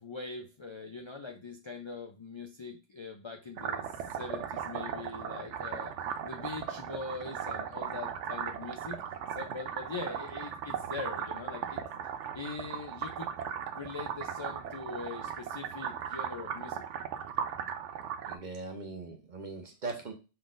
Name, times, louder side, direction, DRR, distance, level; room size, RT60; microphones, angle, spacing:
voice 1, 0.0-5.9 6.2-9.0 9.3-11.8 12.3-13.3 13.7-16.8, left 3 dB, 45° left, 3 dB, 0.3 m, -42 dB
sound 1, 3.6-18.4, right 8 dB, 75° right, 0.9 m, -37 dB
voice 2, 18.3-20.1, right 3 dB, 40° right, 4 dB, 0.9 m, -40 dB
5.5 x 3.8 x 2.5 m, 0.31 s
omnidirectional pair, 1.2 m